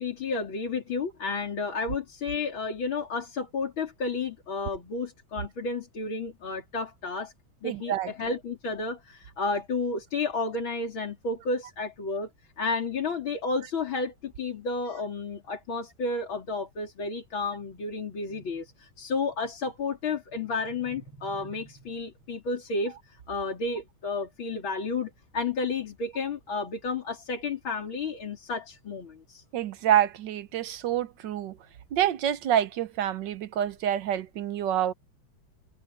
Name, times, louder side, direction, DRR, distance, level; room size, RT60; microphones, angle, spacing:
voice 1, 0.0-7.3 7.6-12.3 12.6-29.4, left 3 dB, 90° left, 4.3 m, -32 dB
voice 2, 7.6-8.1 29.5-31.6 31.9-34.9, right 11 dB, 70° right, 1.4 m, -27 dB
omnidirectional pair, 2.1 m